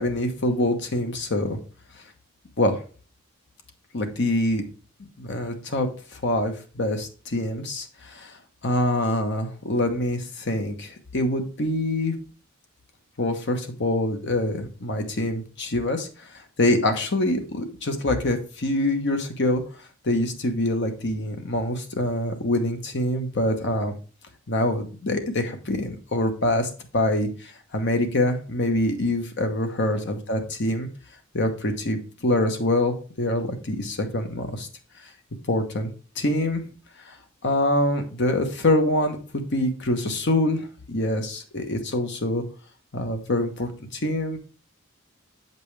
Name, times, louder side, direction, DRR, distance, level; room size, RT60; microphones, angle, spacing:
voice 1, 0.0-1.6 2.6-2.8 3.9-4.6 5.2-8.4 8.6-12.1 13.2-19.6 20.0-23.9 24.5-30.9 31.3-34.7 35.5-35.9 36.2-36.6 37.0-37.1 37.4-42.4 42.9-44.4, left 1 dB, 55° left, 6 dB, 1.1 m, -25 dB
7.5 x 5.4 x 3.3 m, 0.37 s
head